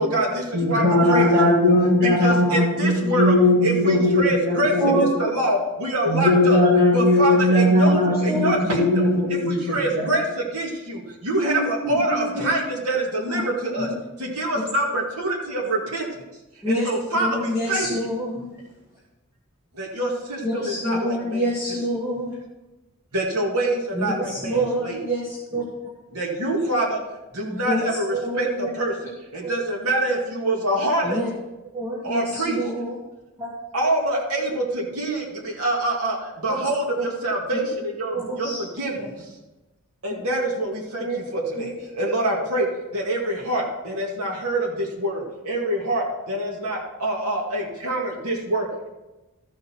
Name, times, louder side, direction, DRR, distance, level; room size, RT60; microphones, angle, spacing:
voice 1, 0.0-1.3 2.0-3.4 3.6-6.6 6.9-9.0 9.3-13.9 14.2-16.2 16.7-17.9 19.7-21.5 23.1-25.0 26.1-27.0 27.3-28.9 29.3-31.2 32.0-32.6 33.7-39.1 40.0-42.7 42.9-48.9, right 1 dB, 85° right, -1 dB, 2.2 m, -25 dB
voice 2, 0.5-5.1 6.1-10.1, left 1 dB, 45° right, -5 dB, 2.8 m, -19 dB
voice 3, 11.4-12.4 13.2-13.4 13.8-13.9 16.6-16.9 17.2-18.5 20.4-22.3 23.9-25.6 27.5-27.8 28.1-28.7 29.4-29.5 31.0-31.3 31.7-32.9 33.4-33.5 37.0-37.1 38.1-38.6 39.0-39.1 41.0-41.2 41.6-41.7, right 1 dB, 10° right, -6 dB, 1.6 m, -27 dB
13.5 x 6.6 x 4.4 m, 1.1 s
head